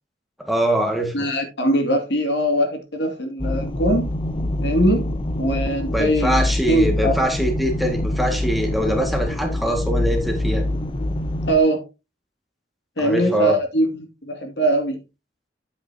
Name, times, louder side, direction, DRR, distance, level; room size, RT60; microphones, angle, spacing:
voice 1, 0.4-1.3 5.9-10.7 13.0-13.6, equal, ahead, 1.8 m, -23 dB
voice 2, 1.1-4.1 4.6-7.2 11.5-11.8 13.0-15.0, right 1 dB, 75° left, 2.4 m, -21 dB
sound 1, 3.4-11.6, left 1 dB, 30° left, 0.6 m, -25 dB
9.4 x 8.3 x 2.8 m
head